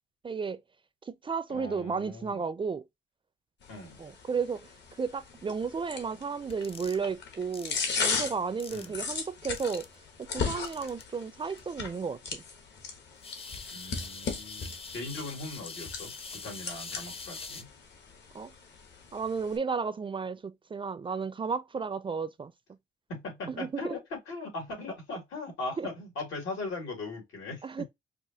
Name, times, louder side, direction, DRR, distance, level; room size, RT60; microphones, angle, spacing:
voice 1, 0.2-0.6 1.1-2.8 4.0-4.7 5.0-9.9 10.2-12.4 18.3-18.5 19.1-22.5 23.5-23.9 25.8-25.9 27.6-27.8, right 5 dB, 25° right, 0.4 m, -33 dB
voice 2, 1.5-2.4 3.7-4.0 8.7-9.0 13.7-17.7 23.1-27.8, left 3 dB, 85° left, 2.1 m, -39 dB
sound 1, 3.6-19.6, left 5 dB, 60° left, 1.2 m, -38 dB
sound 2, 6.5-7.0 7.5-7.8 8.6-9.0 9.5-10.0 10.6-11.0 11.6-11.7 13.2-17.6, left 4 dB, 30° left, 0.6 m, -43 dB
4.8 x 2.0 x 2.7 m
cardioid pair, 90°, 20 cm